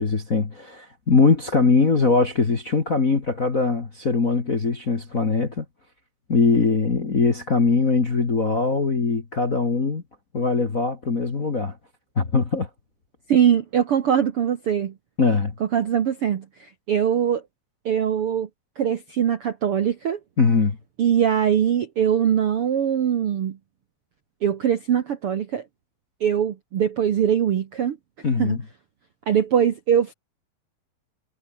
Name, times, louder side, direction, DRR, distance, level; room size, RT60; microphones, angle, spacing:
voice 1, 0.0-5.6 6.3-10.0 10.3-11.7 12.1-12.7 15.2-15.5 20.4-20.8 28.2-28.6, left 4 dB, 35° left, 1.5 m, -21 dB
voice 2, 13.3-14.9 15.6-17.4 17.8-18.5 18.8-20.2 21.0-23.6 24.4-25.6 26.2-28.0 28.4-28.6 29.3-30.1, right 9 dB, 60° right, 1.5 m, -22 dB
omnidirectional pair, 4.3 m